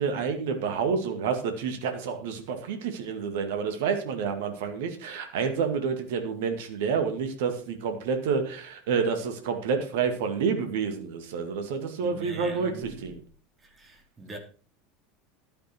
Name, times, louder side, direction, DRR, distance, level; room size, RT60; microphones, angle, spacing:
voice 1, 0.0-13.2, right 6 dB, 65° right, 2.2 m, -29 dB
voice 2, 12.0-13.1 13.6-14.4, right 3 dB, 25° right, 4.2 m, -43 dB
12.0 x 10.5 x 4.6 m
figure-of-eight pair, 75°, 0 cm